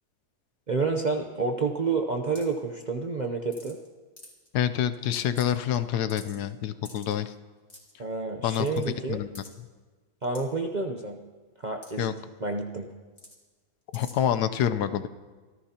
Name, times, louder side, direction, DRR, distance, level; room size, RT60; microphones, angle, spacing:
voice 1, 0.7-3.8 8.0-9.2 10.2-11.2 11.6-12.1 12.4-12.9, right 4 dB, 40° right, 3 dB, 0.6 m, -29 dB
sound 1, 2.4-2.6 3.5-3.9 4.2-4.5 4.9-5.0 5.2-5.8 6.1-6.4 6.8-7.2 7.7-7.9 8.5-8.9 9.3-9.5 10.3-10.4 11.8-11.9 12.2-12.3 13.2-13.4 13.9-14.1, left 1 dB, 20° left, 2.8 m, -47 dB
voice 2, 4.5-7.3 8.4-8.8 9.1-9.3 12.0-12.1 13.9-15.1, left 10 dB, 80° left, 11 dB, 1.3 m, -27 dB
25.0 x 14.5 x 2.9 m, 1.4 s
omnidirectional pair, 1.7 m